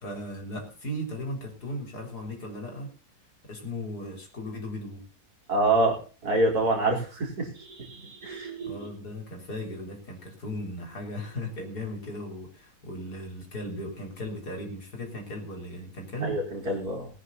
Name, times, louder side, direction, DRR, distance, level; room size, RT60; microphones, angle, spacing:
voice 1, 0.0-2.9 3.4-5.0 8.6-16.4, left 1 dB, 85° left, 3 dB, 4.6 m, -37 dB
voice 2, 5.5-6.0 6.2-8.9 16.2-17.1, right 2 dB, 75° right, 0 dB, 4.9 m, -26 dB
20.0 x 9.8 x 4.1 m, 0.36 s
omnidirectional pair, 1.6 m